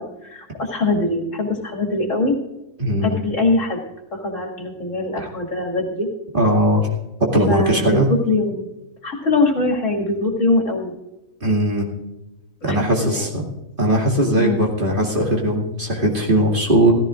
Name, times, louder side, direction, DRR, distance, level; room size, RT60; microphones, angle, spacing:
voice 1, 0.0-2.4 3.0-3.8 4.1-6.1 7.5-8.6 9.0-10.9 12.6-13.3 14.4-14.6, left 2 dB, 65° left, 1 dB, 2.6 m, -22 dB
voice 2, 2.8-3.2 5.2-5.3 6.3-6.9 7.3-8.1 11.4-11.9 12.6-13.5 13.8-16.9, right 1 dB, 40° right, -1 dB, 2.5 m, -19 dB
16.5 x 14.5 x 2.5 m, 0.96 s
omnidirectional pair, 1.4 m